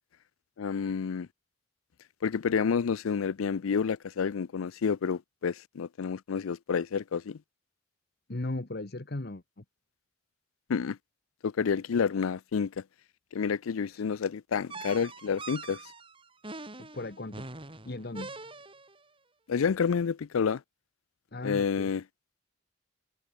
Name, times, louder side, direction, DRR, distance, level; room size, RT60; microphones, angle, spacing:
voice 1, 0.6-1.3 2.2-7.4 10.7-11.0 11.4-12.7 13.3-15.8 19.5-20.6 21.4-22.0, left 6 dB, 90° left, 0.5 m, -29 dB
voice 2, 8.3-9.6 13.9-14.0 16.8-17.5 17.8-18.3 21.3-21.9, left 2 dB, 50° left, 1.2 m, -37 dB
sound 1, 14.7-19.0, right 3 dB, 25° right, 5.2 m, -43 dB
head